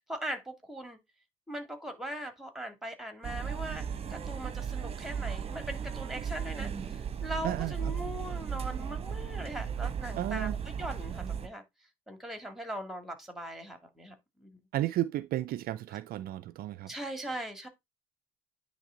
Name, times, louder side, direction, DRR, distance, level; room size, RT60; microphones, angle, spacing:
voice 1, 0.1-1.0 1.5-11.6 12.1-14.1 14.4-14.6 16.9-17.7, right 1 dB, ahead, 2.3 m, -40 dB
sound 1, 3.2-11.5, right 7 dB, 30° right, 0.9 m, -36 dB
voice 2, 7.4-7.9 10.2-10.5 14.7-16.9, right 14 dB, 55° right, 0.4 m, -33 dB
9.8 x 3.3 x 3.8 m
hypercardioid pair, 55°, 19 cm